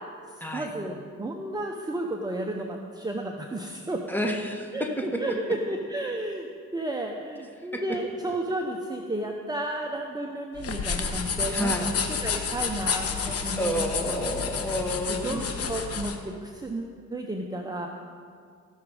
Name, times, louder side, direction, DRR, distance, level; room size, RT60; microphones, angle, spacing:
voice 1, 0.4-4.0 4.7-14.3 15.1-17.9, right 1 dB, 15° right, 1 dB, 0.8 m, -33 dB
voice 2, 4.1-5.0 7.7-7.8 11.5-11.9 13.6-15.4, equal, 5° left, 2 dB, 1.4 m, -30 dB
sound 1, 10.6-16.2, left 6 dB, 50° left, 1.1 m, -30 dB
17.0 x 6.1 x 4.9 m, 2.1 s
cardioid pair, 90°, 30 cm